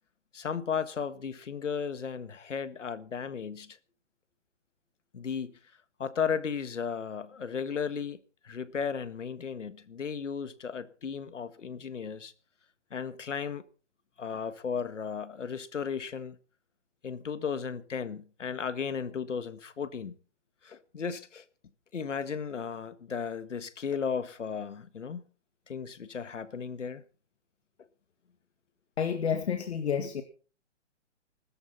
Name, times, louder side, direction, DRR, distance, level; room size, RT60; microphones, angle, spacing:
voice 1, 0.3-3.8 5.1-5.5 6.0-8.2 8.4-12.3 12.9-13.6 14.2-16.4 17.0-20.1 20.6-21.4 21.9-25.3 25.7-27.0, left 6 dB, 85° left, 1.7 m, -35 dB
voice 2, 29.0-30.2, left 7 dB, 65° left, 2.2 m, -29 dB
20.5 x 13.5 x 4.2 m
hypercardioid pair, 150°, 36 cm